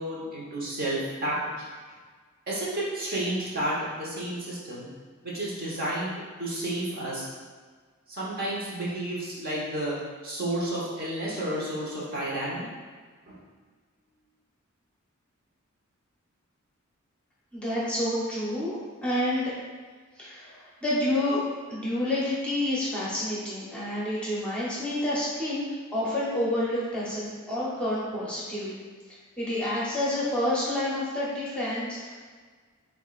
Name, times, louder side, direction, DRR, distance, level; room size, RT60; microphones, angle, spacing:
voice 1, 0.0-1.6 2.5-4.9 5.2-7.3 8.1-10.0 10.2-12.6 13.3-13.4, right 1 dB, 45° right, -6 dB, 1.1 m, -31 dB
voice 2, 17.5-19.5 20.2-21.4 21.7-28.8 29.4-32.2, left 1 dB, 5° left, -8 dB, 0.9 m, -29 dB
6.9 x 2.6 x 2.5 m, 1.5 s
head